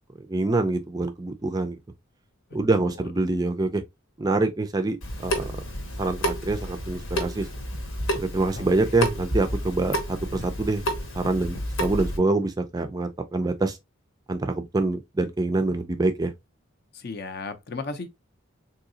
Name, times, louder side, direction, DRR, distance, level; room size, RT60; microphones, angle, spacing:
voice 1, 0.3-1.8 2.5-3.8 4.2-5.6 6.0-7.5 8.1-10.8 11.1-13.8 14.3-16.3, right 2 dB, 20° right, 0.3 m, -25 dB
voice 2, 2.5-3.1 8.5-8.7 16.9-18.1, left 3 dB, 50° left, 0.5 m, -36 dB
Water tap faucet / Sink (filling or washing) / Drip, 5.0-12.2, equal, 80° left, 1.1 m, -30 dB
3.8 x 2.7 x 2.6 m
head